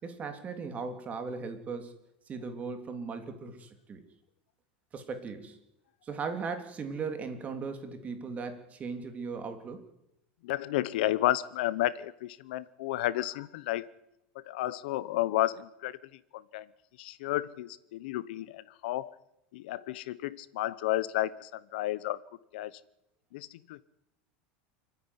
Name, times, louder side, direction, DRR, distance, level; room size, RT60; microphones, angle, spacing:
voice 1, 0.0-1.9 2.3-4.0 4.9-5.6 6.0-9.8, right 5 dB, 25° right, 7 dB, 3.1 m, -38 dB
voice 2, 10.4-13.9 14.3-16.7 17.0-19.1 19.5-22.2 22.5-22.8 23.3-23.8, left 15 dB, 75° left, 18 dB, 1.0 m, -32 dB
28.5 x 10.0 x 10.0 m, 0.84 s
supercardioid pair, 130°, 5 cm